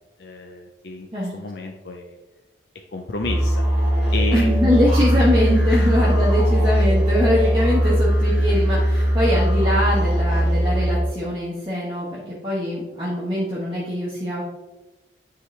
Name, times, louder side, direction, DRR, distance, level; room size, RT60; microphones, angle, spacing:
voice 1, 0.2-1.1 1.3-2.2 2.9-3.6 4.1-4.5 5.7-5.9, left 3 dB, 55° left, 3 dB, 0.6 m, -31 dB
sound 1, 3.2-11.1, equal, 10° right, 2.3 m, -19 dB
voice 2, 4.3-14.4, left 1 dB, 25° right, -7 dB, 1.2 m, -23 dB
9.5 x 3.9 x 3.2 m, 1.0 s
head